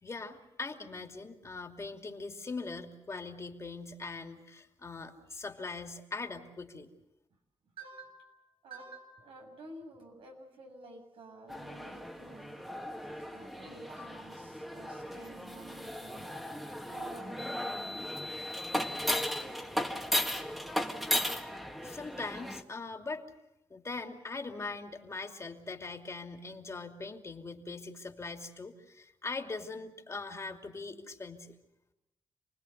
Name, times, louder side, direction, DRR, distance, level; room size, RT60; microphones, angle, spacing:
voice 1, 0.0-6.9 21.8-23.2 23.7-31.5, left 3 dB, 35° left, 4 dB, 2.8 m, -41 dB
voice 2, 7.8-12.6 13.3-16.3 16.8-18.0, right 2 dB, 90° right, 2 dB, 7.5 m, -51 dB
sound 1, 11.5-22.6, equal, ahead, 2.0 m, -36 dB
28.5 x 19.5 x 8.1 m, 0.88 s
cardioid pair, 95°, 9 cm